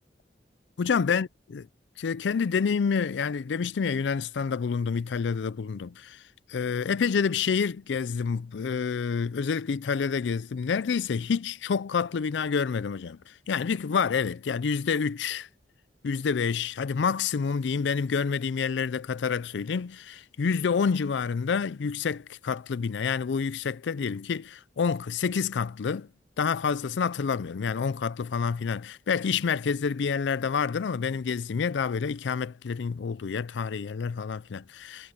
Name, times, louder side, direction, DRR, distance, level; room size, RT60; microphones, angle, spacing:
voice 1, 0.8-1.7 2.0-6.2 6.5-13.2 13.5-15.5 16.0-26.1 26.4-35.1, left 6 dB, 80° left, 0.4 m, -28 dB
head